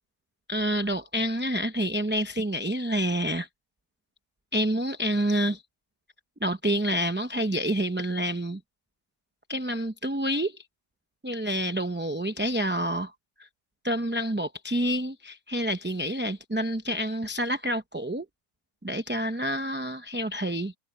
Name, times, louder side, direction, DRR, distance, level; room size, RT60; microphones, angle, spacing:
voice 1, 0.5-3.5 4.5-5.6 6.4-8.6 9.5-10.6 11.2-13.1 13.8-18.2 18.8-20.7, equal, 10° right, 0.6 m, -28 dB
omnidirectional pair, 1.5 m